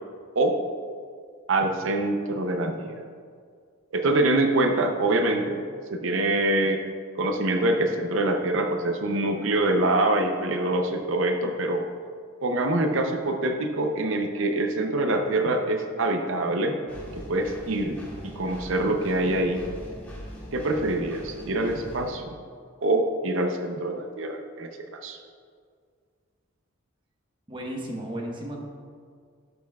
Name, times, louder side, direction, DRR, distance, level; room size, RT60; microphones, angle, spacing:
voice 1, 1.5-3.0 3.9-5.6 5.9-6.8 7.2-11.8 12.4-16.8 17.2-18.0 18.3-19.6 20.5-22.3 22.8-24.8 25.0-25.2, right 2 dB, 65° right, 5 dB, 0.6 m, -25 dB
Engine, 16.9-22.1, equal, 10° left, 1.6 m, -42 dB
voice 2, 27.5-28.6, right 1 dB, 25° right, -1 dB, 1.0 m, -34 dB
12.0 x 6.8 x 2.3 m, 2.1 s
head